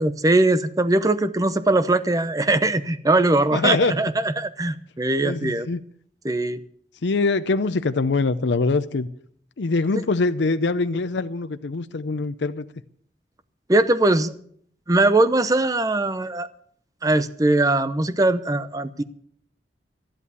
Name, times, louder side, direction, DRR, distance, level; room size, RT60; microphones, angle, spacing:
voice 1, 0.0-5.7 6.2-6.6 13.7-14.3 14.9-16.5 17.0-19.0, right 2 dB, 20° right, 0.7 m, -21 dB
voice 2, 3.5-3.9 5.2-5.8 7.0-9.1 9.6-12.7, left 3 dB, 85° left, 0.6 m, -23 dB
13.0 x 11.0 x 7.0 m
head